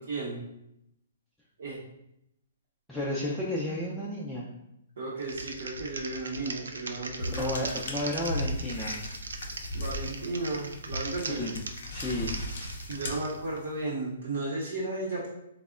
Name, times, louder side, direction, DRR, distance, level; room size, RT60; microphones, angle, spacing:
voice 1, 0.1-0.4 1.6-1.8 5.0-7.5 9.7-11.5 12.9-15.3, right 2 dB, 70° right, -6 dB, 0.7 m, -34 dB
voice 2, 2.9-4.5 7.3-9.0 11.3-11.6 11.9-12.4, left 1 dB, 5° left, -7 dB, 0.4 m, -32 dB
Typing, 5.2-13.4, right 3 dB, 85° right, 0.3 m, -40 dB
sound 1, 7.2-13.8, left 1 dB, 60° left, 0.5 m, -37 dB
3.4 x 2.0 x 2.4 m, 0.82 s
hypercardioid pair, 135°, 0 cm